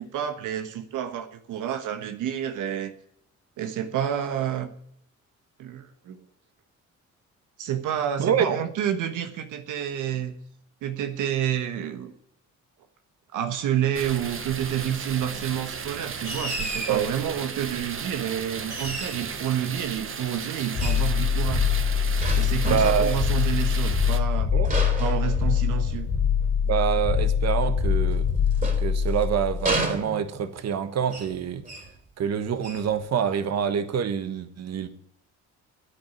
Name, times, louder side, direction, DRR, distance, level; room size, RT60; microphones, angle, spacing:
voice 1, 0.0-2.9 3.6-4.7 5.6-6.2 7.6-10.3 10.8-12.1 13.3-21.7 22.4-24.5 25.0-26.1, right 10 dB, 85° right, 1.4 m, -29 dB
voice 2, 8.2-8.6 16.9-17.1 22.6-23.1 24.5-24.9 26.7-28.3 28.8-31.6 32.2-34.9, right 8 dB, 60° right, 1.4 m, -26 dB
sound 1, 13.9-24.2, right 6 dB, 45° right, 1.3 m, -35 dB
sound 2, 16.2-17.1 18.7-19.4 20.8-21.1 22.2-23.1 24.6-25.9 28.1-29.2 29.6-30.5 31.1-31.4 31.6-32.0 32.6-32.9, right 2 dB, 25° right, 3.5 m, -32 dB
sound 3, 20.7-29.8, left 7 dB, 60° left, 2.9 m, -24 dB
10.0 x 9.0 x 9.6 m
cardioid pair, 90°, 30 cm